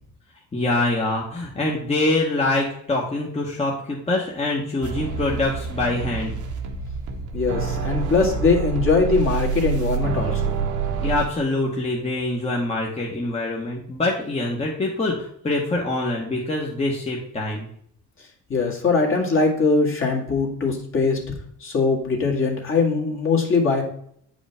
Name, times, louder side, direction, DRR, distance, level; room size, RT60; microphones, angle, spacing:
voice 1, 0.5-6.4 11.0-17.7, left 2 dB, 20° left, -3 dB, 1.2 m, -24 dB
sound 1, 4.8-11.3, right 6 dB, 70° right, 1.3 m, -27 dB
voice 2, 7.3-10.6 18.5-21.2 21.6-23.8, left 4 dB, 40° left, 0 dB, 2.0 m, -21 dB
8.5 x 5.1 x 3.5 m, 0.67 s
cardioid pair, 125°, 32 cm